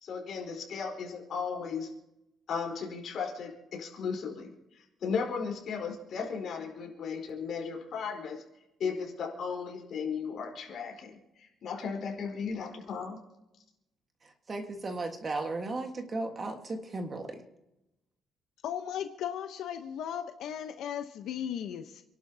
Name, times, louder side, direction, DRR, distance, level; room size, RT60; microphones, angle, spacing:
voice 1, 0.0-1.9 2.5-4.5 5.0-8.4 8.8-13.2, left 5 dB, 50° left, 1 dB, 4.1 m, -35 dB
voice 2, 14.5-17.4, right 2 dB, 25° right, 4 dB, 1.6 m, -35 dB
voice 3, 18.6-22.0, left 9 dB, 75° left, 6 dB, 0.9 m, -36 dB
29.0 x 11.5 x 2.8 m, 0.91 s
cardioid pair, 165°, 0 cm